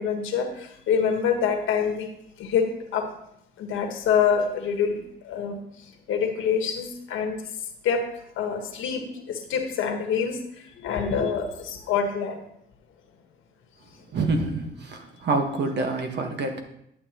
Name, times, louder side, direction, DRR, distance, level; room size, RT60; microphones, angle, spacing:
voice 1, 0.0-2.1 2.4-3.1 3.6-5.6 6.1-7.4 7.8-8.0 8.4-10.4 10.8-12.4, left 7 dB, 85° left, 4 dB, 1.4 m, -26 dB
voice 2, 14.1-16.6, right 3 dB, 60° right, 4 dB, 1.5 m, -27 dB
11.0 x 7.3 x 3.0 m, 0.75 s
cardioid pair, 90°, 20 cm